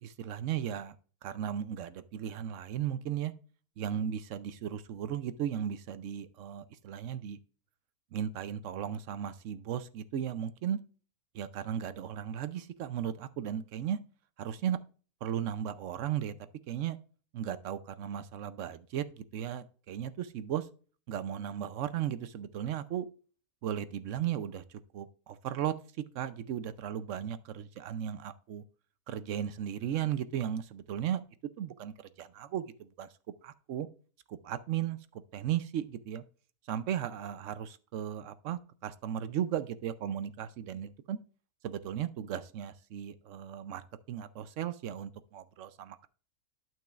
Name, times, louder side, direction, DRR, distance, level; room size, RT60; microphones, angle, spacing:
voice 1, 0.0-1.0 1.2-3.3 3.8-7.4 8.1-10.8 11.3-14.0 14.4-14.8 15.2-16.3 16.7-17.0 17.3-20.7 21.1-23.1 23.6-25.8 26.1-28.6 29.1-31.2 31.6-33.1 33.4-33.9 34.3-35.0 35.3-36.2 36.7-41.2 41.6-46.1, right 10 dB, 65° right, 0.8 m, -36 dB
11.5 x 6.1 x 2.4 m
omnidirectional pair, 1.6 m